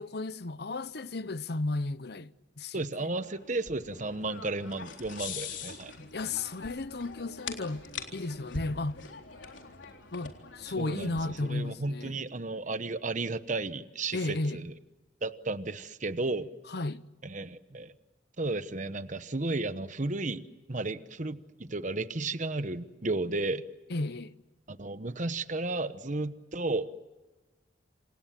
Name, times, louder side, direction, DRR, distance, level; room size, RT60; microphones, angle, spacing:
voice 1, 0.0-3.1 6.0-9.0 10.1-12.2 14.1-14.6 16.7-17.1 23.9-24.3, left 2 dB, 60° left, 0.9 m, -34 dB
voice 2, 2.7-5.9 10.8-14.7 15.2-16.5 17.2-17.9 18.4-23.6 24.7-26.9, right 2 dB, 40° right, 1.1 m, -33 dB
sound 1, 3.2-11.7, left 5 dB, 85° left, 3.8 m, -44 dB
27.5 x 27.5 x 7.6 m
head